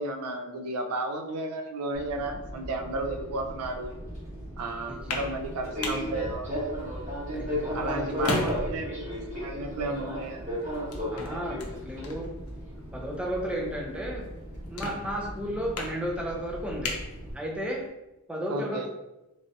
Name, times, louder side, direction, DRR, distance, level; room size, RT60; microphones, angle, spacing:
voice 1, 0.0-3.9 4.6-6.6 7.7-9.1 9.4-10.4 18.5-18.9, right 2 dB, 85° right, 5 dB, 0.4 m, -33 dB
Fixed-wing aircraft airplane, 1.9-17.3, equal, 30° right, 0.9 m, -36 dB
sound 1, 4.8-17.9, left 2 dB, 80° left, 0.6 m, -39 dB
voice 2, 4.9-5.3 7.3-8.5 11.1-12.3 12.9-14.3 14.7-17.0 17.3-17.8 18.3-18.9, equal, 5° right, -1 dB, 0.3 m, -34 dB
3.1 x 2.5 x 2.6 m, 0.97 s
head